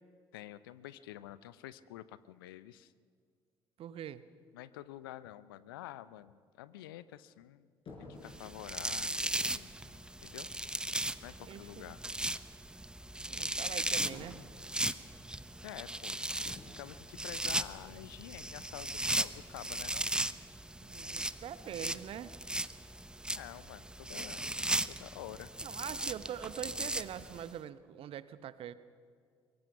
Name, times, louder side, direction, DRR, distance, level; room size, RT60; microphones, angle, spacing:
voice 1, 0.3-2.9 4.5-7.7 8.0-10.5 11.2-12.0 15.6-16.2 16.8-20.1 23.4-24.5 24.9-25.5, left 14 dB, 70° left, 16 dB, 0.7 m, -48 dB
voice 2, 3.8-4.2 11.4-12.0 13.3-14.4 20.8-22.3 25.6-28.7, right 10 dB, 50° right, 15 dB, 1.0 m, -43 dB
sound 1, 7.8-8.4 14.0-14.5 16.4-16.8 17.1-17.4, left 3 dB, 45° left, 5.8 m, -49 dB
sound 2, 8.3-27.5, right 1 dB, 5° right, 0.8 m, -37 dB
23.0 x 23.0 x 5.9 m, 2.1 s
figure-of-eight pair, 50°, 12 cm